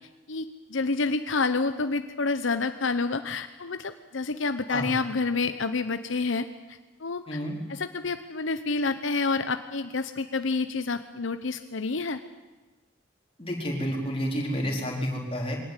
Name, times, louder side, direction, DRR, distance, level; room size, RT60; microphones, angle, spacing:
voice 1, 0.3-7.4 7.7-12.2, left 3 dB, 75° left, 10 dB, 0.9 m, -29 dB
voice 2, 7.3-7.6 13.4-15.6, equal, 30° left, -1 dB, 4.3 m, -30 dB
22.5 x 18.0 x 9.0 m, 1.2 s
head